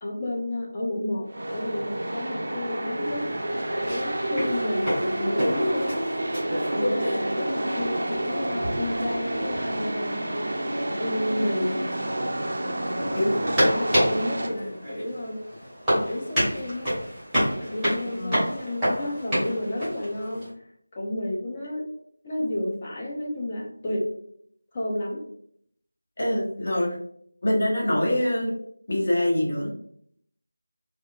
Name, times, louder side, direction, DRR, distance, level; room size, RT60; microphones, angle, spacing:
voice 1, 0.0-3.3 3.7-6.0 6.7-10.3 11.0-11.8 12.9-15.4 15.9-16.9 17.6-20.5 21.0-21.9 22.2-24.1 24.7-25.2, left 1 dB, 20° left, -4 dB, 0.5 m, -31 dB
sound 1, 1.3-14.5, right 1 dB, 45° right, 0.4 m, -29 dB
sound 2, 3.0-20.5, equal, ahead, 1.0 m, -30 dB
voice 2, 18.1-18.4 26.2-27.0 27.4-28.5 28.9-29.7, left 1 dB, 40° left, -4 dB, 0.9 m, -24 dB
2.8 x 2.3 x 2.4 m, 0.66 s
figure-of-eight pair, 165°, 0 cm